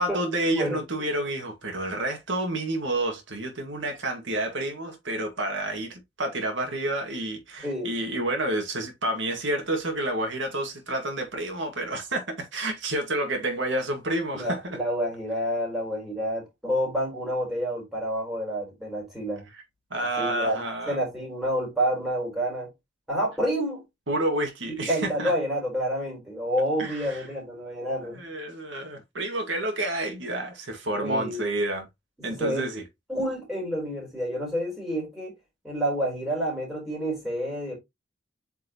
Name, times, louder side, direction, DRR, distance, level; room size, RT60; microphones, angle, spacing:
voice 1, 0.0-14.8 19.5-19.6 19.9-21.0 24.1-25.3 26.8-27.3 28.0-31.9 32.2-32.8, right 1 dB, 70° right, 1.9 m, -29 dB
voice 2, 7.6-7.9 14.3-19.5 20.2-22.7 23.1-23.8 24.9-28.3 30.9-31.4 32.2-32.7 33.1-35.3 35.6-37.7, equal, ahead, 4.2 m, -29 dB
8.3 x 4.7 x 3.0 m
head